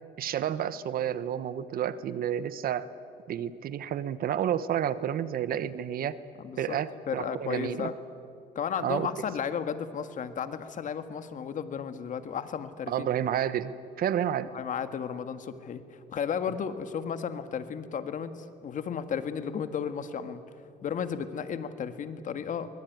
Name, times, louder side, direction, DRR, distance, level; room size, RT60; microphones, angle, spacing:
voice 1, 0.2-2.9 3.3-6.2 6.6-7.9 8.8-9.1 12.9-14.5, right 10 dB, 60° right, 15 dB, 1.2 m, -30 dB
voice 2, 6.4-6.8 7.1-8.0 8.6-13.1 14.5-15.8 16.1-20.4 20.8-22.7, left 7 dB, 50° left, 10 dB, 1.8 m, -34 dB
23.5 x 21.5 x 9.4 m, 2.5 s
cardioid pair, 110°, 17 cm